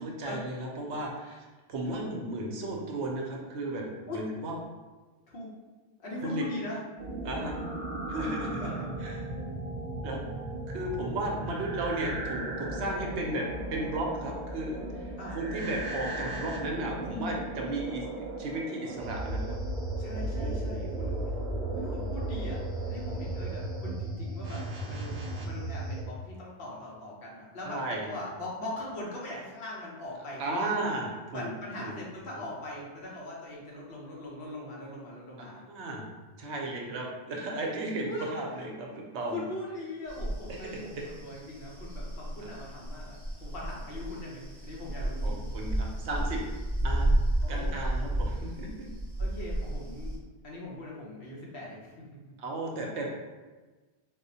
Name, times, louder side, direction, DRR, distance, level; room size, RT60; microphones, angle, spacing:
voice 1, 0.0-4.5 6.2-6.4 7.2-7.6 8.1-8.7 9.0-9.3 10.0-10.2 10.7-19.5 20.3-20.7 27.7-28.1 30.4-31.5 31.8-31.9 35.7-36.0 36.4-39.4 40.5-41.0 42.4-42.5 45.2-46.4 46.8-47.1 47.5-48.9 52.4-53.1, right 2 dB, 75° right, -1 dB, 0.9 m, -35 dB
voice 2, 6.0-6.8 8.6-8.9 15.2-15.4 20.0-21.2 21.7-22.6 22.9-25.2 25.4-30.7 31.3-35.6 38.1-38.6 39.3-45.4 47.4-47.8 49.2-50.1 50.4-52.0, left 1 dB, 55° left, -4 dB, 1.0 m, -40 dB
sound 1, 7.0-26.0, right 1 dB, 60° right, 0.4 m, -35 dB
sound 2, 40.1-50.2, right 1 dB, 25° right, 0.8 m, -32 dB
4.2 x 2.0 x 2.7 m, 1.3 s
omnidirectional pair, 1.2 m